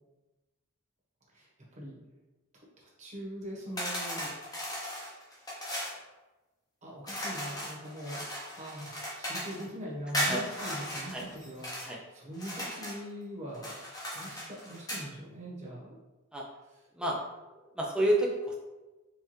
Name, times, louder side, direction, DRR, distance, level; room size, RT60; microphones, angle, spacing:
voice 1, 1.3-2.0 2.8-4.2 5.8-6.0 6.8-8.3 8.5-13.7 14.1-16.0, equal, 35° right, -4 dB, 1.2 m, -42 dB
sound 1, 3.8-6.0 7.1-9.6 10.1-11.9 12.3-13.0 13.5-15.1, equal, 15° left, 1.0 m, -36 dB
voice 2, 17.7-18.5, right 1 dB, 5° right, -3 dB, 0.5 m, -29 dB
4.5 x 3.3 x 3.2 m, 1.1 s
head